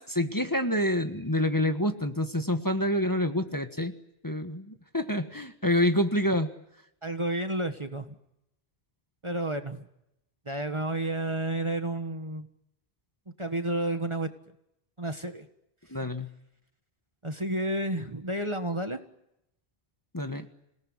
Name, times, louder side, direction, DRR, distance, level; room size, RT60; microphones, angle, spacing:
voice 1, 0.0-3.9 4.2-6.5 15.9-16.3 20.1-20.5, left 1 dB, 20° left, 6 dB, 1.6 m, -27 dB
voice 2, 7.0-8.2 9.2-9.9 10.5-12.5 13.4-14.3 15.0-15.5 17.2-19.0, right 1 dB, 30° right, 7 dB, 1.6 m, -31 dB
28.0 x 18.5 x 9.8 m, 0.82 s
omnidirectional pair, 1.0 m